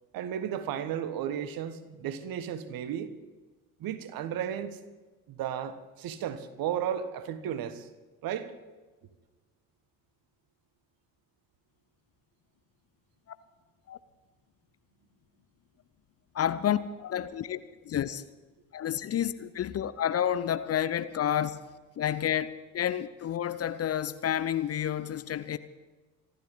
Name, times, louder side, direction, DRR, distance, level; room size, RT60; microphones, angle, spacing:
voice 1, 0.1-3.1 3.8-4.8 5.3-7.9 8.2-8.5, right 9 dB, 50° right, 1.5 m, -34 dB
voice 2, 16.3-18.2 18.7-21.6 22.0-25.6, left 10 dB, 35° left, 0.8 m, -30 dB
26.0 x 12.5 x 4.0 m
figure-of-eight pair, 50°, 45 cm